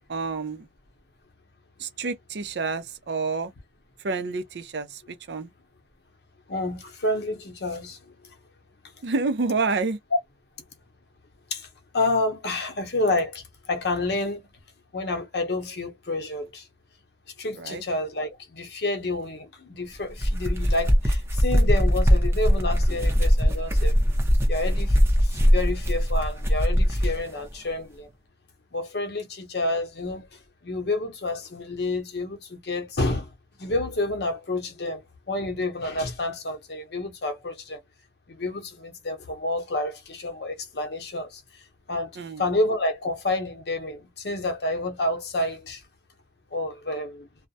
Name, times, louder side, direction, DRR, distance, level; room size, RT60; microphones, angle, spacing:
voice 1, 0.1-0.7 1.8-3.5 4.0-4.9 5.3-5.5 9.0-10.0 17.6-17.8 42.2-42.4, right 4 dB, 65° right, 0.5 m, -28 dB
voice 2, 6.5-8.1 10.1-10.2 11.5-11.7 11.9-14.4 14.9-16.7 17.4-23.9 24.5-28.1 28.7-30.3 30.6-33.3 33.6-37.8 38.3-41.4 41.9-45.8 46.5-47.3, left 2 dB, 65° left, 0.8 m, -29 dB
sound 1, 20.0-27.2, equal, 15° right, 0.6 m, -21 dB
2.3 x 2.1 x 2.6 m
head